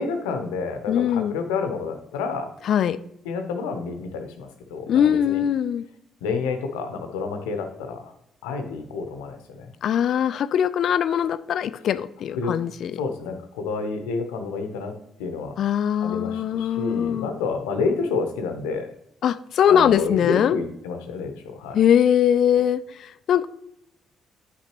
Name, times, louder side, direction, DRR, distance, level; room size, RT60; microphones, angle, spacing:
voice 1, 0.0-2.5 3.2-5.4 6.2-8.1 8.4-9.7 12.4-12.5 13.0-14.9 15.2-15.6 16.0-18.9 19.7-21.8, left 4 dB, 85° left, 6 dB, 0.8 m, -29 dB
voice 2, 0.9-1.3 2.7-3.0 4.9-5.8 9.8-13.0 15.6-17.3 19.2-20.6 21.7-23.5, left 9 dB, 65° left, 15 dB, 0.4 m, -21 dB
9.5 x 5.8 x 3.0 m, 0.77 s
hypercardioid pair, 50°, 0 cm